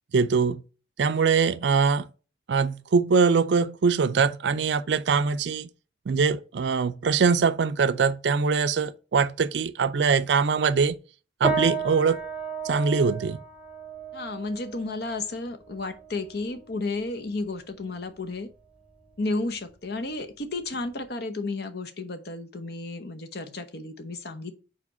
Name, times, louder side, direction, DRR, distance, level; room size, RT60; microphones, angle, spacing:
voice 1, 0.1-0.6 1.0-2.1 2.5-5.7 6.1-11.0 11.4-12.2 12.6-13.4, right 5 dB, 70° right, 0.4 m, -22 dB
sound 1, 11.4-21.1, right 4 dB, 5° right, 0.9 m, -35 dB
voice 2, 14.1-18.5 19.2-24.5, left 2 dB, 60° left, 0.9 m, -32 dB
5.0 x 4.3 x 5.4 m
head